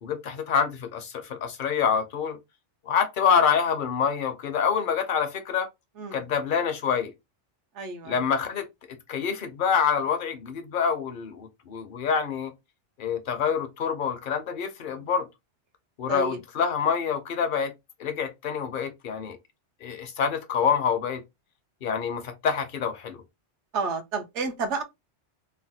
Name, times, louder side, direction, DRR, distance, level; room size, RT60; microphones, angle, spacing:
voice 1, 0.0-2.4 2.9-5.7 6.1-7.1 8.0-8.7 9.1-12.5 13.0-15.3 16.0-17.7 18.0-19.4 19.8-21.2 21.8-23.2, left 7 dB, 55° left, 0.6 m, -26 dB
voice 2, 7.8-8.2 14.9-15.0 16.1-16.4 23.7-24.8, right 4 dB, 80° right, 1.0 m, -30 dB
3.2 x 2.2 x 2.6 m
omnidirectional pair, 1.2 m